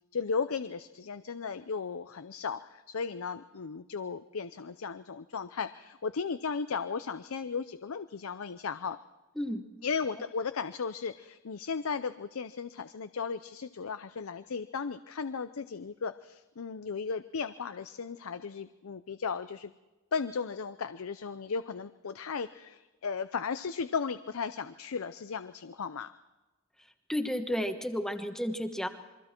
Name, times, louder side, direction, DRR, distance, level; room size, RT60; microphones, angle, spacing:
voice 1, 0.1-9.0 9.8-19.7 20.1-26.1, left 5 dB, 80° left, 11 dB, 0.6 m, -35 dB
voice 2, 27.1-28.9, equal, ahead, 6 dB, 1.2 m, -32 dB
28.0 x 23.0 x 4.5 m, 1.1 s
head